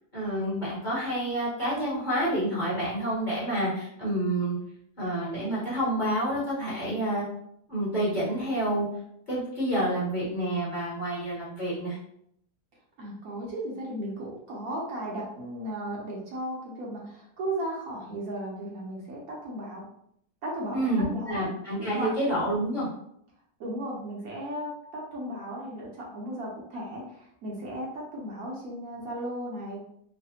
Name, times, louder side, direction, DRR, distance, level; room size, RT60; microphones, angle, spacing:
voice 1, 0.1-4.6 5.0-7.2 7.7-8.9 9.3-12.0 20.7-22.9, right 1 dB, 35° left, -8 dB, 1.1 m, -28 dB
voice 2, 13.0-19.8 20.4-21.5 21.8-22.1 23.6-29.8, right 1 dB, 65° right, -3 dB, 1.1 m, -35 dB
3.2 x 2.1 x 2.7 m, 0.71 s
omnidirectional pair, 1.7 m